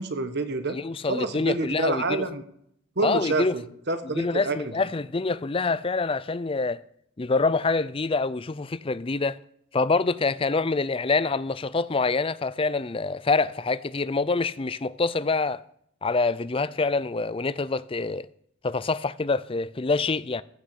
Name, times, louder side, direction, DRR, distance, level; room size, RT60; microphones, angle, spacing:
voice 1, 0.0-0.8 1.1-2.4 3.0-4.6, right 3 dB, 55° right, 1.4 m, -28 dB
voice 2, 0.7-2.2 3.0-3.5 4.0-6.8 7.2-9.4 9.7-15.6 16.0-18.3 18.6-20.4, left 3 dB, 25° left, 0.5 m, -26 dB
15.0 x 6.6 x 8.4 m
head